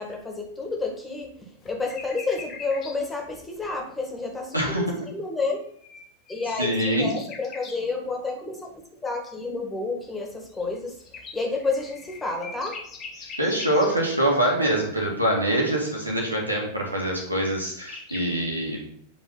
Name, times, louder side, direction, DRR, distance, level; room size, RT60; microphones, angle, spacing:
voice 1, 0.0-1.3 1.6-5.6 6.3-6.7 7.0-10.9 11.3-12.8, left 3 dB, 10° left, 1 dB, 2.0 m, -30 dB
sound 1, 1.6-3.0 5.5-7.8 10.5-14.7 17.3-17.4 17.6-18.2, left 4 dB, 30° left, 1.6 m, -42 dB
voice 2, 4.5-4.9 6.6-7.1 13.2-18.8, right 1 dB, 90° right, -2 dB, 2.1 m, -24 dB
8.5 x 5.3 x 4.0 m, 0.66 s
figure-of-eight pair, 90°, 0 cm